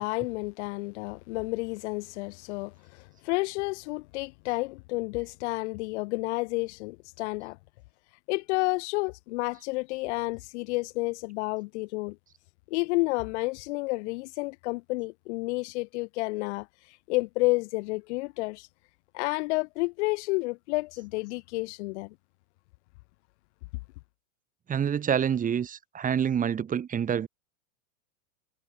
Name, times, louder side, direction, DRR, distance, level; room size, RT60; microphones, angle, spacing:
voice 1, 0.0-7.6 8.3-12.2 12.7-16.7 17.1-18.7 19.1-22.1, left 24 dB, 55° left, 1.2 m, -30 dB
voice 2, 24.7-27.3, right 8 dB, 20° right, 1.8 m, -27 dB
supercardioid pair, 130°, 41 cm